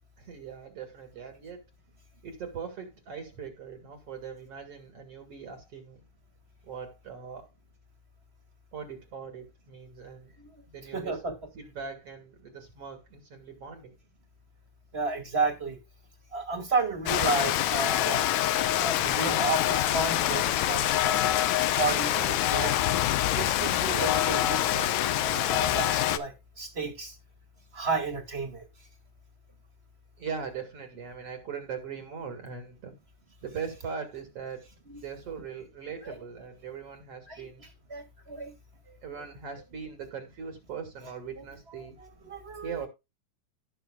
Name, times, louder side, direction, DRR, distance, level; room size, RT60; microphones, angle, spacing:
voice 1, 0.2-1.6 2.2-6.0 6.6-7.5 8.7-10.3 10.7-11.2 11.5-14.0 30.2-32.9 33.4-34.7 34.9-37.6 39.0-42.0 42.6-42.9, right 6 dB, 50° right, 2.7 m, -40 dB
voice 2, 10.9-11.3 14.9-15.8 16.3-18.3 18.8-21.3 21.7-22.9 23.3-27.1 27.7-28.7 34.9-35.0 36.0-36.2 37.3-37.5 37.9-38.5 38.9-39.0 42.2-42.9, right 3 dB, 20° right, 2.2 m, -32 dB
Rain, 17.1-26.2, left 13 dB, 75° left, 1.9 m, -25 dB
17.5 x 6.4 x 2.3 m
omnidirectional pair, 3.7 m